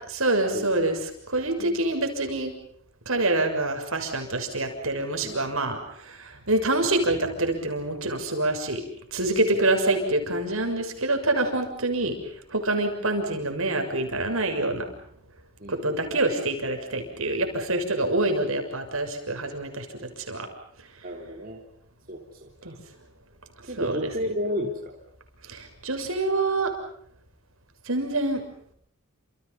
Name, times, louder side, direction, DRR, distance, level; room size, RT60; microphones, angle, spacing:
voice 1, 0.1-1.0 1.3-2.5 3.0-8.8 9.1-12.1 12.5-14.8 15.7-20.5 22.6-22.7 23.8-24.1 25.5-26.7 27.9-28.4, right 2 dB, 70° right, 5 dB, 6.8 m, -26 dB
voice 2, 15.6-15.9 21.0-21.6 22.1-22.7 23.6-25.0, equal, 40° right, 1 dB, 3.3 m, -33 dB
30.0 x 28.5 x 5.7 m, 0.66 s
head